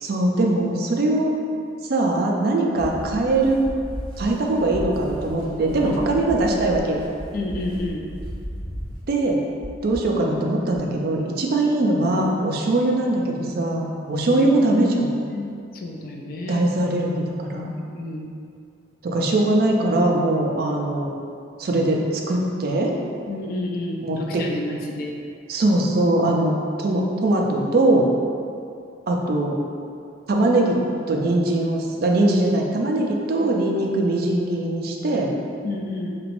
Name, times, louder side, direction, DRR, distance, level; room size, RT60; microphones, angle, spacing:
voice 1, 0.0-1.3 1.9-3.6 4.2-7.0 9.1-9.4 9.8-15.1 16.5-17.7 19.0-21.1 21.6-22.9 24.0-24.4 25.5-28.1 29.1-29.6 30.3-30.8 31.1-35.3, right 2 dB, 50° right, 0 dB, 0.3 m, -21 dB
sound 1, 2.7-9.0, equal, 25° right, 1.0 m, -37 dB
sound 2, 2.8-10.8, equal, 5° left, 0.6 m, -38 dB
voice 2, 7.3-8.0 14.3-14.9 15.3-16.7 17.6-18.3 23.3-25.1 35.6-36.2, left 2 dB, 50° left, 1 dB, 0.3 m, -30 dB
3.1 x 2.9 x 2.5 m, 2.4 s
head